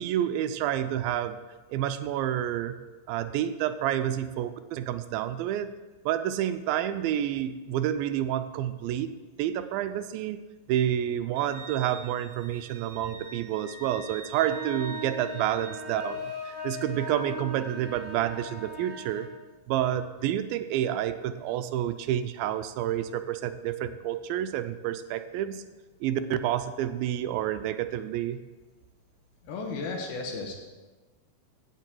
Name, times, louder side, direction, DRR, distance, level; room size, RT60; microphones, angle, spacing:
voice 1, 0.0-1.4 1.7-2.8 3.1-5.8 6.1-9.1 9.4-10.4 10.7-16.2 16.5-19.3 19.7-25.6 26.0-28.4, right 11 dB, 85° right, 11 dB, 2.4 m, -29 dB
Wind instrument woodwind instrument, 11.3-15.8, right 4 dB, 65° right, 2.4 m, -45 dB
sound 1, 14.3-19.3, left 1 dB, 40° left, 3.7 m, -39 dB
voice 2, 29.4-30.5, left 3 dB, 85° left, 1 dB, 3.1 m, -34 dB
16.0 x 6.6 x 4.5 m, 1.3 s
omnidirectional pair, 4.2 m